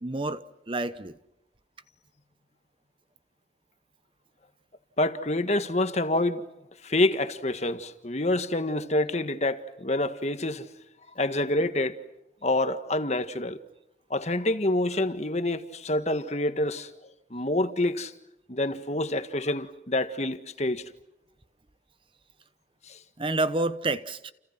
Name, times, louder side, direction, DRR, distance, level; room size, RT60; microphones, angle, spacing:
voice 1, 0.0-1.2 23.2-24.3, right 2 dB, 30° right, 0.9 m, -29 dB
voice 2, 5.0-6.4 6.8-10.7 11.1-12.0 12.4-13.6 14.1-16.9 17.3-18.1 18.5-20.9 22.9-23.0, left 1 dB, 40° left, 1.6 m, -27 dB
30.0 x 29.5 x 6.0 m
head